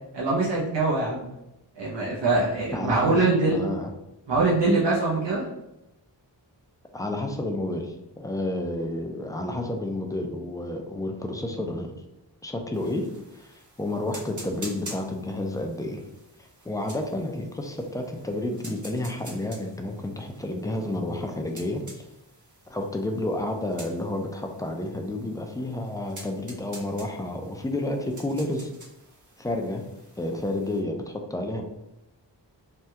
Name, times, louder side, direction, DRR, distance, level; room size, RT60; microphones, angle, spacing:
voice 1, 0.1-1.3 1.8-3.6 4.3-5.5, right 3 dB, 70° right, -6 dB, 0.8 m, -23 dB
voice 2, 2.7-3.2 3.5-3.9 6.9-11.9 12.4-13.1 13.3-16.0 16.7-21.8 22.7-28.7 29.4-29.8 30.2-31.6, left 1 dB, 10° left, 3 dB, 0.3 m, -30 dB
sound 1, 12.7-30.8, right 1 dB, 40° right, 1.0 m, -48 dB
3.3 x 2.2 x 2.8 m, 0.92 s
wide cardioid pair, 60°, 44 cm